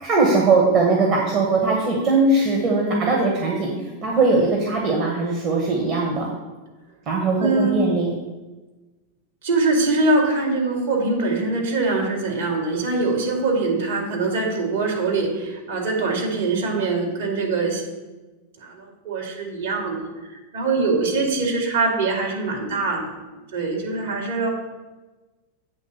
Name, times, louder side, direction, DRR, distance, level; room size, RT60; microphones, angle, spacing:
voice 1, 0.0-3.7 4.0-6.3 7.1-8.1, right 3 dB, 35° right, -1 dB, 1.3 m, -20 dB
voice 2, 7.4-7.8 9.4-17.8 18.6-23.1 23.5-24.5, right 3 dB, 60° right, 0 dB, 2.3 m, -23 dB
8.3 x 3.9 x 6.6 m, 1.2 s
figure-of-eight pair, 90°, 0 cm